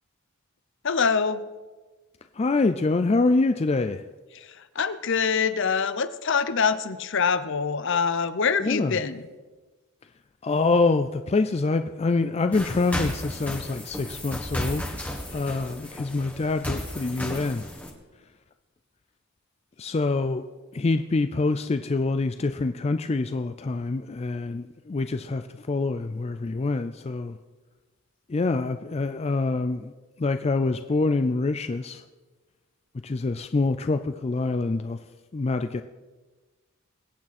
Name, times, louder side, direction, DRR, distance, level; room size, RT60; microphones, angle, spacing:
voice 1, 0.8-1.4 4.8-9.2, left 5 dB, 60° left, 13 dB, 0.7 m, -24 dB
voice 2, 2.3-4.0 8.6-9.0 10.4-14.9 15.3-17.7 19.8-20.4 20.7-27.4 28.3-29.9 30.2-32.0 33.0-35.0 35.3-35.8, left 3 dB, 30° left, 9 dB, 0.4 m, -25 dB
sound 1, 12.5-17.9, left 1 dB, 5° left, 1.5 m, -34 dB
22.5 x 8.7 x 4.2 m, 1.3 s
head